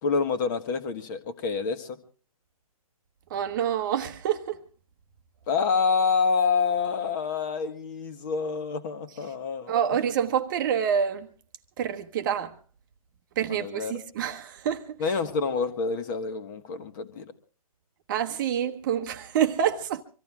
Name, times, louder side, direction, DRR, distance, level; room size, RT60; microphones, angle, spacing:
voice 1, 0.0-2.0 5.5-9.7 13.5-14.0 15.0-17.3, left 5 dB, 30° left, 1.7 m, -27 dB
voice 2, 3.3-4.6 9.7-11.3 11.8-12.5 13.4-15.0 18.1-20.0, right 8 dB, 35° right, 1.1 m, -27 dB
25.0 x 14.5 x 3.6 m
hypercardioid pair, 155°, 19 cm